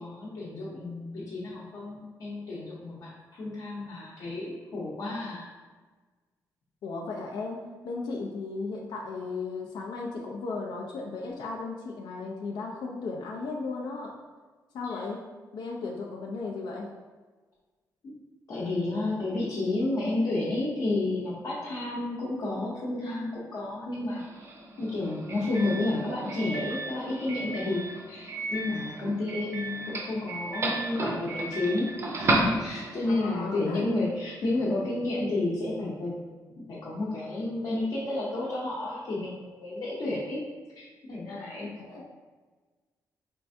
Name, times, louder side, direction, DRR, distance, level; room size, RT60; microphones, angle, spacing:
voice 1, 0.0-5.5 14.9-15.0 18.0-18.1 18.5-24.2 24.8-31.9 32.2-40.4 40.8-42.0, left 2 dB, 55° left, -7 dB, 0.7 m, -31 dB
voice 2, 6.8-14.1 14.7-15.2 15.5-16.9 33.1-33.8 41.5-42.0, left 3 dB, 90° left, -1 dB, 0.5 m, -35 dB
Doorbell, 24.1-33.1, right 2 dB, 40° right, 0.5 m, -33 dB
4.4 x 3.2 x 2.6 m, 1.3 s
wide cardioid pair, 180°, 7 cm